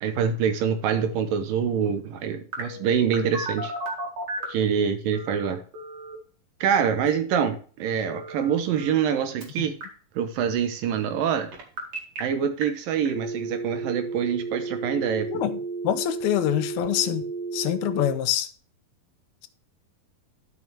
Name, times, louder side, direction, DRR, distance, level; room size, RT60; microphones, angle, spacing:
voice 1, 0.0-3.7 4.5-5.6 6.6-9.8 10.2-11.5 12.2-15.3, right 7 dB, 75° right, 2.5 m, -25 dB
Telephone, 2.5-4.6 5.1-6.1 8.1-9.1 9.4-9.8 11.5-12.2 12.6-12.7 13.1-18.1, right 3 dB, 50° right, 2.9 m, -33 dB
voice 2, 15.8-17.2 17.5-18.5, left 12 dB, 85° left, 2.5 m, -25 dB
12.0 x 6.1 x 3.4 m
omnidirectional pair, 4.4 m